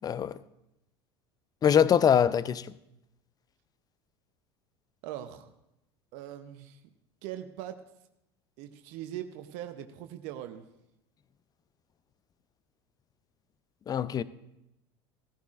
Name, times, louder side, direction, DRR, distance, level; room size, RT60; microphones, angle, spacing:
voice 1, 0.0-0.3 1.6-2.7 13.9-14.2, left 8 dB, 30° left, 0.5 m, -23 dB
voice 2, 5.0-5.5 6.1-6.8 7.2-7.8 8.6-10.7, right 12 dB, 60° right, 0.8 m, -41 dB
16.0 x 14.0 x 2.5 m
hypercardioid pair, 85°, 13 cm